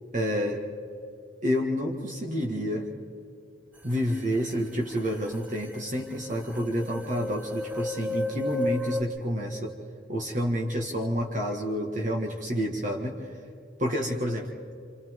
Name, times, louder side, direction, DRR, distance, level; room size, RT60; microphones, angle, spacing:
voice 1, 0.1-0.6 1.4-2.9 3.8-9.8 10.1-13.3 13.8-14.5, equal, 45° right, 1 dB, 1.8 m, -29 dB
sound 1, 5.0-5.1 5.3-9.0, left 2 dB, 10° right, 0.8 m, -33 dB
29.0 x 27.0 x 3.7 m, 2.5 s
head